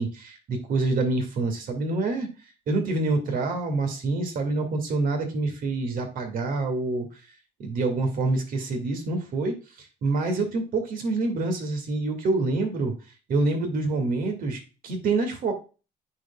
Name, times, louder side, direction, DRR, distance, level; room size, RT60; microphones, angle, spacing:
voice 1, 0.0-2.3 2.7-7.1 7.6-12.9 13.3-15.5, right 3 dB, 55° right, 5 dB, 2.2 m, -26 dB
9.8 x 4.7 x 2.3 m, 0.32 s
cardioid pair, 110°, 17 cm